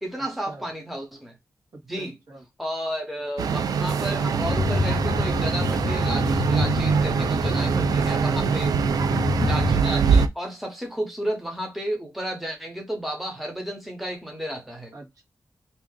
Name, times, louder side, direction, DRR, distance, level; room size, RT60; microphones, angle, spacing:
voice 1, 0.0-1.3 1.9-2.2 2.6-8.7 9.4-14.9, equal, ahead, 0.8 m, -32 dB
voice 2, 1.7-2.4 7.5-8.5 8.8-9.3 14.9-15.2, right 2 dB, 70° right, 1.2 m, -43 dB
sound 1, 3.4-10.3, right 6 dB, 90° right, 0.4 m, -23 dB
sound 2, 4.4-9.8, left 4 dB, 40° left, 0.4 m, -28 dB
2.7 x 2.5 x 3.6 m
wide cardioid pair, 165°, 6 cm